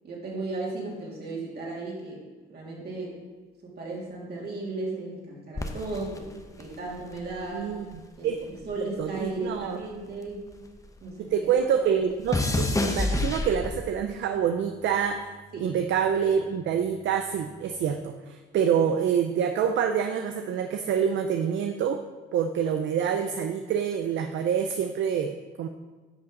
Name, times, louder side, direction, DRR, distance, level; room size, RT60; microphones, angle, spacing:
voice 1, 0.0-2.2 2.5-3.1 3.6-6.3 6.6-7.7 8.2-10.4 11.0-11.3 15.5-15.7, right 2 dB, 55° right, -4 dB, 2.9 m, -35 dB
sound 1, 5.5-8.1 8.3-11.0 11.3-14.1 14.8-15.2, left 2 dB, 15° left, 0.8 m, -30 dB
voice 2, 7.5-7.8 8.2-8.4 8.8-9.8 11.2-15.3 15.6-22.0 22.3-25.7, right 8 dB, 70° right, 6 dB, 0.5 m, -26 dB
10.5 x 5.6 x 3.9 m, 1.3 s
cardioid pair, 90°, 20 cm